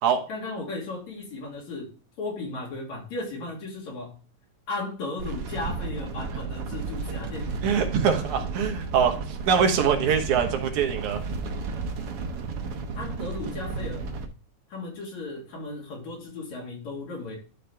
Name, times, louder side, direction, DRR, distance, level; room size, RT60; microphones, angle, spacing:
voice 1, 0.3-1.9 2.2-4.2 4.7-7.7 13.0-14.1 14.7-17.4, left 3 dB, 70° left, -1 dB, 3.8 m, -35 dB
sound 1, 5.2-14.3, right 4 dB, 60° right, 1.7 m, -33 dB
voice 2, 7.6-11.2, right 7 dB, 80° right, 5 dB, 2.6 m, -23 dB
12.0 x 4.1 x 3.3 m, 0.38 s
omnidirectional pair, 3.4 m